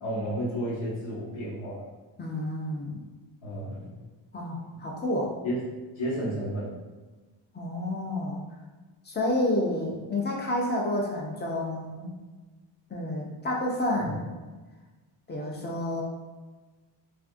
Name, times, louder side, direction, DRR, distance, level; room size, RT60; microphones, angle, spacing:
voice 1, 0.0-1.8 3.4-3.9 5.4-5.6 6.0-6.7 14.0-14.1, equal, 85° left, -9 dB, 1.3 m, -32 dB
voice 2, 2.2-3.0 4.3-5.4 7.5-8.4 9.0-12.1 12.9-14.3 15.3-16.0, left 1 dB, 20° left, -2 dB, 0.5 m, -29 dB
3.3 x 2.5 x 2.5 m, 1.3 s
wide cardioid pair, 130°, 47 cm